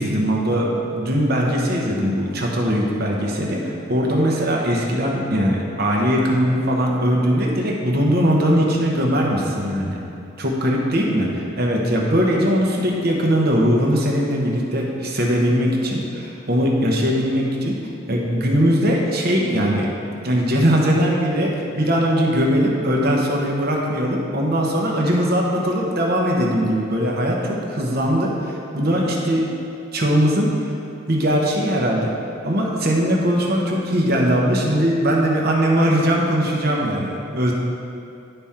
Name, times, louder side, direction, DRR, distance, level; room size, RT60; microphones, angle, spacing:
voice 1, 0.0-10.0 10.4-17.8 18.1-19.9 20.2-29.5 29.9-30.5 31.1-32.2 32.4-37.5, equal, 50° right, -2 dB, 1.0 m, -20 dB
11.0 x 3.7 x 4.3 m, 2.6 s
head